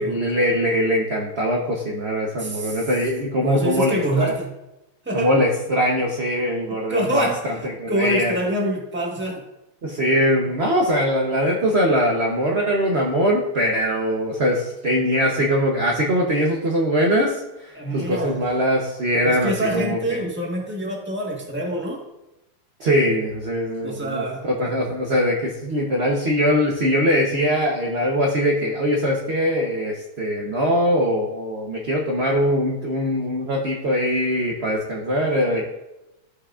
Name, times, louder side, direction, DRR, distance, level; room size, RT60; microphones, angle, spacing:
voice 1, 0.0-4.3 5.1-7.5 7.8-8.3 9.8-20.2 22.8-35.7, equal, 55° right, -1 dB, 0.7 m, -22 dB
voice 2, 2.4-2.8 3.4-4.5 5.0-5.3 6.9-7.5 7.9-9.4 17.7-18.5 19.2-22.0 23.8-24.4, right 1 dB, 5° right, -1 dB, 0.9 m, -25 dB
13.5 x 5.7 x 2.4 m, 0.93 s
omnidirectional pair, 2.4 m